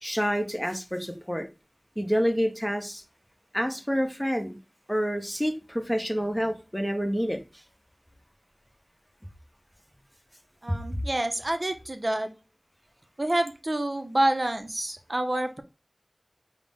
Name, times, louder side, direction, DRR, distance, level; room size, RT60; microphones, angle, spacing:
voice 1, 0.0-1.5 2.0-3.0 3.5-4.6 4.9-7.4, equal, 5° left, 4 dB, 0.7 m, -28 dB
voice 2, 10.6-12.3 13.2-15.6, right 1 dB, 50° right, 7 dB, 0.5 m, -27 dB
5.5 x 2.1 x 3.5 m, 0.29 s
wide cardioid pair, 45°, 0 cm